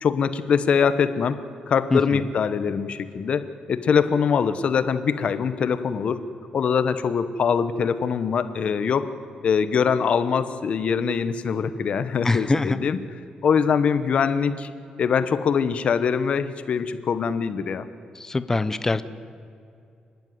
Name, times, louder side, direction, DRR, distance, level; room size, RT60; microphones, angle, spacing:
voice 1, 0.0-1.4 1.7-6.2 6.5-9.1 9.4-13.0 13.4-14.7 15.0-17.9, left 6 dB, 50° left, 12 dB, 1.0 m, -23 dB
voice 2, 1.9-2.2 12.2-12.8 18.2-19.0, left 3 dB, 20° left, 13 dB, 0.8 m, -23 dB
29.5 x 10.5 x 9.5 m, 2.5 s
cardioid pair, 135°, 3 cm